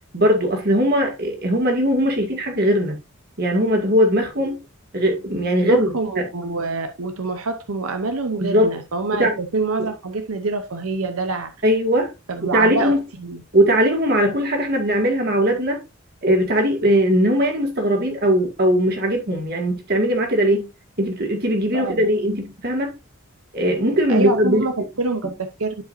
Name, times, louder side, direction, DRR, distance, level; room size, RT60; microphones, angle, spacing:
voice 1, 0.1-3.0 3.4-4.6 4.9-6.3 8.4-8.7 9.2-9.3 11.6-12.1 12.4-13.0 13.5-15.8 16.2-20.7 21.0-22.9 23.5-24.6, equal, 50° right, 2.3 m, -19 dB
voice 2, 5.6-11.5 12.3-13.4 21.7-22.1 24.1-25.3 25.6-25.7, right 3 dB, 90° right, 0.8 m, -26 dB
11.5 x 4.9 x 2.7 m
head